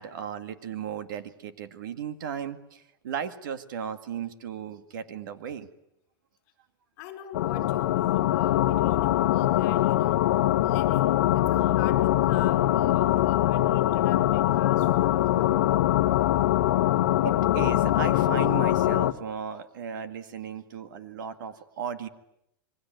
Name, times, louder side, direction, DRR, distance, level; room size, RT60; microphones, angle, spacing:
voice 1, 0.0-5.7 17.2-22.1, right 7 dB, 60° right, 9 dB, 2.1 m, -36 dB
voice 2, 7.0-10.3 10.6-15.8, left 8 dB, 35° left, 6 dB, 5.1 m, -44 dB
sound 1, 7.3-19.1, left 14 dB, 50° left, 1.2 m, -23 dB
27.5 x 23.0 x 9.3 m, 0.79 s
supercardioid pair, 180°, 12 cm